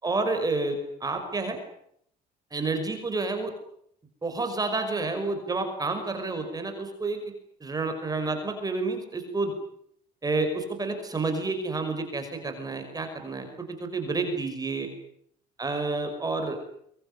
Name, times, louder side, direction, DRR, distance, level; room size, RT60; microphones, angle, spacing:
voice 1, 0.0-1.6 2.5-3.5 4.2-7.3 7.6-9.5 10.2-14.9 15.6-16.6, right 3 dB, 20° right, 6 dB, 5.6 m, -29 dB
23.5 x 23.0 x 9.8 m, 0.70 s
cardioid pair, 110°, 17 cm